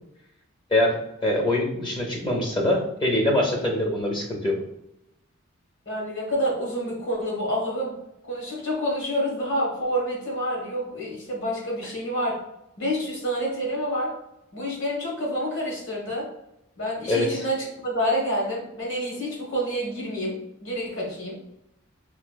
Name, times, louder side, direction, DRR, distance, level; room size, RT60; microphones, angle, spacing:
voice 1, 0.7-4.6 17.1-17.4, left 1 dB, 25° left, 1 dB, 0.6 m, -24 dB
voice 2, 5.8-7.9 8.3-12.4 12.8-14.1 14.5-16.3 16.8-21.4, equal, 65° left, -3 dB, 1.2 m, -28 dB
4.4 x 2.3 x 2.2 m, 0.82 s
head